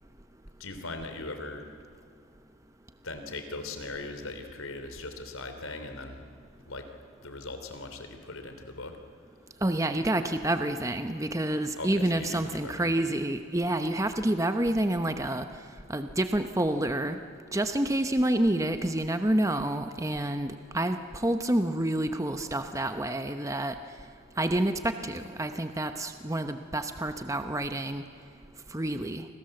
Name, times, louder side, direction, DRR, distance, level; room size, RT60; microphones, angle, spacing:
voice 1, 0.6-1.7 3.0-6.2 6.7-6.9 7.2-9.0 11.8-12.9, left 2 dB, 85° left, 7 dB, 3.3 m, -39 dB
voice 2, 9.6-15.4 15.9-17.2 17.5-23.8 24.4-28.0 28.7-29.2, right 1 dB, 15° right, 8 dB, 0.9 m, -28 dB
29.5 x 25.0 x 7.8 m, 2.3 s
head